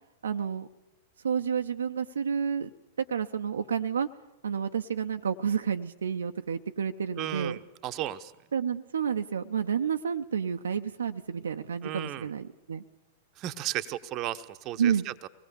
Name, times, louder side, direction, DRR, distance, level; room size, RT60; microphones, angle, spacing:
voice 1, 0.2-0.7 1.2-2.7 3.1-4.1 4.4-7.6 8.5-12.8 14.8-15.0, right 7 dB, 70° right, 7 dB, 0.7 m, -30 dB
voice 2, 7.2-8.3 11.8-12.3 13.4-15.3, right 13 dB, 35° right, 11 dB, 0.9 m, -35 dB
24.0 x 18.5 x 6.9 m, 1.0 s
figure-of-eight pair, 95°, 0 cm